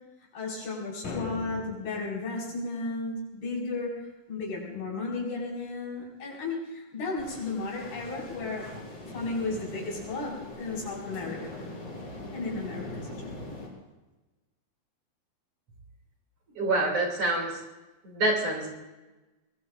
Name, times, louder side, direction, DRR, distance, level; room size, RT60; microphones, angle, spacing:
voice 1, 0.3-8.7 9.0-11.6 12.3-13.6, left 3 dB, 85° left, -3 dB, 7.0 m, -34 dB
sound 1, 1.0-2.1, left 3 dB, 55° left, 2.8 m, -38 dB
sound 2, 7.2-13.7, left 1 dB, 30° left, 5.1 m, -42 dB
voice 2, 16.6-17.6 18.0-18.7, right 2 dB, 40° right, -1 dB, 3.4 m, -26 dB
23.5 x 21.5 x 2.5 m, 1.1 s
omnidirectional pair, 4.3 m